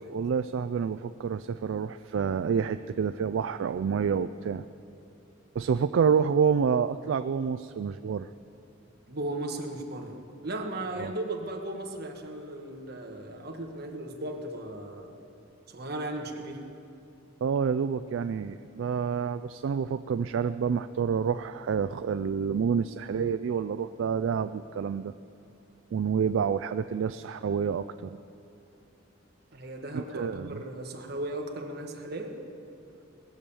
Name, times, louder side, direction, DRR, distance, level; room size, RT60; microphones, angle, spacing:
voice 1, 0.1-4.6 5.6-8.3 11.0-11.1 17.4-25.1 25.9-28.2 29.9-30.6, right 6 dB, 75° right, 11 dB, 0.3 m, -28 dB
voice 2, 9.1-15.2 15.7-16.6 29.5-32.3, right 1 dB, 55° right, 2 dB, 1.4 m, -36 dB
20.0 x 7.2 x 6.9 m, 2.8 s
head